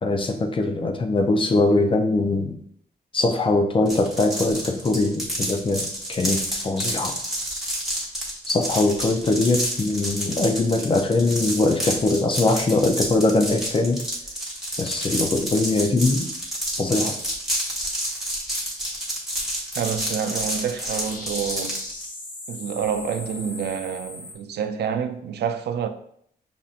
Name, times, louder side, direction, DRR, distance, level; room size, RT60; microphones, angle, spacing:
voice 1, 0.0-2.6 3.1-7.2 8.5-14.0 14.8-16.3 16.8-17.2, left 2 dB, 30° left, 0.5 m, -22 dB
sound 1, 3.9-22.1, equal, ahead, 1.1 m, -29 dB
voice 2, 19.8-21.9 22.5-25.9, right 7 dB, 80° right, 0.4 m, -28 dB
sound 2, 20.0-24.3, left 2 dB, 55° left, 0.8 m, -39 dB
5.5 x 2.5 x 2.4 m
wide cardioid pair, 125°, 17 cm